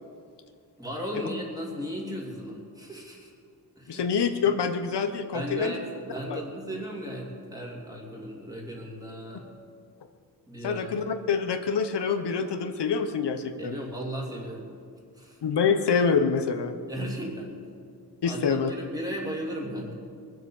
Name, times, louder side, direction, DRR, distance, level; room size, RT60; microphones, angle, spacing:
voice 1, 0.8-3.3 3.8-4.1 5.3-9.5 10.5-11.0 13.6-14.7 15.1-15.4 16.9-17.6 18.2-19.9, equal, 10° right, -2 dB, 3.0 m, -36 dB
voice 2, 3.9-5.7 6.3-6.4 10.6-13.8 15.4-16.8 18.2-18.7, left 6 dB, 80° left, 7 dB, 1.0 m, -26 dB
22.5 x 7.9 x 7.2 m, 2.3 s
wide cardioid pair, 160°, 40 cm